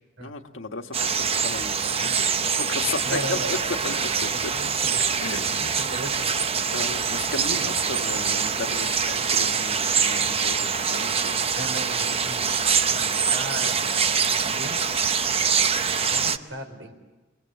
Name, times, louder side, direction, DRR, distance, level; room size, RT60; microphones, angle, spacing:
voice 1, 0.2-4.5 5.2-5.7 6.7-11.4 13.0-13.2, left 3 dB, 90° left, 5 dB, 1.6 m, -34 dB
sound 1, 0.9-16.4, right 6 dB, 30° right, 0.7 m, -24 dB
voice 2, 3.0-4.9 5.2-6.2 6.5-6.7 11.5-14.8 15.8-16.9, right 1 dB, 70° right, 7 dB, 3.9 m, -37 dB
29.5 x 22.0 x 7.8 m, 1.2 s
head